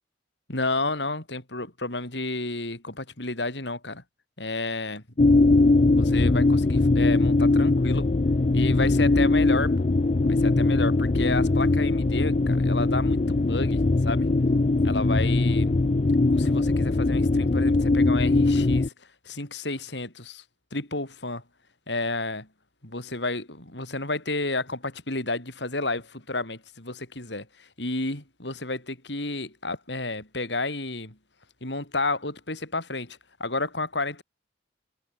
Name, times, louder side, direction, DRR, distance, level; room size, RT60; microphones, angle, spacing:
voice 1, 0.5-4.0 4.4-5.0 6.0-8.1 8.5-9.9 10.3-14.3 14.8-15.7 16.3-20.4 20.7-21.4 21.9-22.5 22.8-31.2 31.6-34.2, left 2 dB, 70° left, 6.5 m, -31 dB
sound 1, 5.2-18.9, left 2 dB, 40° left, 0.5 m, -21 dB
head